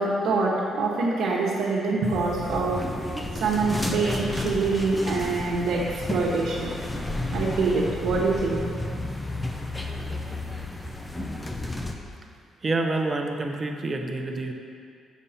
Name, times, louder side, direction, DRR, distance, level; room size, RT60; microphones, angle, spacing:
voice 1, 0.0-2.8 3.3-6.7 7.3-8.6, right 3 dB, 75° right, -6 dB, 1.2 m, -25 dB
sound 1, 2.0-11.9, left 2 dB, 15° left, 0.7 m, -32 dB
voice 2, 12.6-14.5, right 2 dB, 35° right, 3 dB, 0.8 m, -27 dB
7.3 x 6.8 x 4.3 m, 2.3 s
cardioid pair, 90°, 0 cm